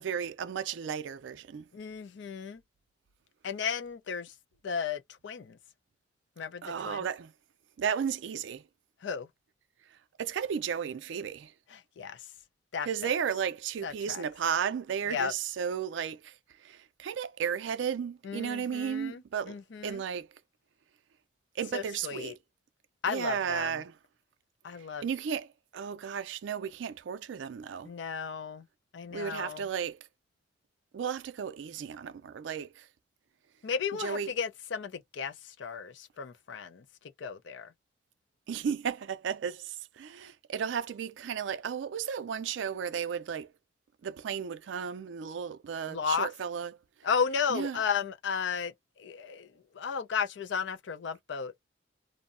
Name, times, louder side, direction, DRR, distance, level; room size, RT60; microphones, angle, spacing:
voice 1, 0.0-1.7 6.6-7.3 7.8-8.6 10.2-11.5 12.9-16.4 16.6-20.3 21.6-22.4 23.1-23.9 25.0-25.5 25.7-27.9 29.1-30.0 30.9-32.9 34.0-34.3 38.5-43.5 44.0-46.7 47.5-47.8, right 7 dB, 70° right, 0.4 m, -34 dB
voice 2, 1.7-2.6 3.4-4.3 4.6-5.6 6.4-7.1 9.0-9.3 11.7-12.3 12.7-12.9 13.8-14.2 15.1-15.3 18.2-20.0 21.7-22.3 23.0-23.8 24.6-25.1 27.9-28.7 28.9-29.7 33.6-37.7 45.9-46.3 47.0-51.5, left 6 dB, 70° left, 0.5 m, -34 dB
2.6 x 2.0 x 2.4 m
head